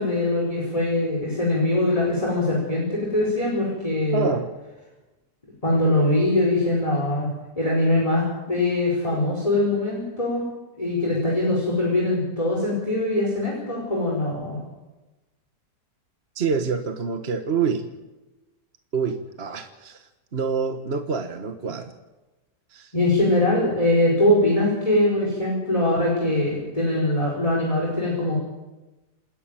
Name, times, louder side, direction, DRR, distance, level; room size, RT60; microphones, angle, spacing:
voice 1, 0.0-4.3 5.6-7.3 7.6-10.4 10.8-14.6 22.9-28.4, left 1 dB, 20° left, -3 dB, 4.9 m, -22 dB
voice 2, 4.1-4.5 16.3-17.9 18.9-21.9 22.7-22.9, right 5 dB, 40° right, 7 dB, 1.4 m, -27 dB
27.5 x 11.0 x 9.0 m, 1.1 s
omnidirectional pair, 1.8 m